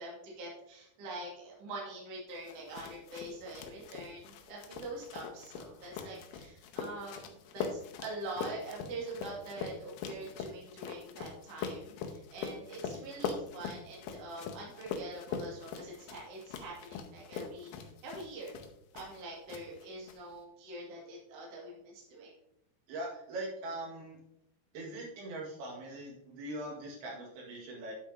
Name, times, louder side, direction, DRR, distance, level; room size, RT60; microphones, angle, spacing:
voice 1, 0.0-18.5 18.9-22.3, right 2 dB, 45° right, -4 dB, 3.0 m, -44 dB
sound 1, 2.5-19.2 19.5-20.2, left 6 dB, 75° left, 2.4 m, -42 dB
voice 2, 22.9-24.2 24.7-27.9, right 1 dB, 85° right, -3 dB, 4.0 m, -41 dB
9.6 x 8.5 x 2.9 m, 0.79 s
omnidirectional pair, 4.3 m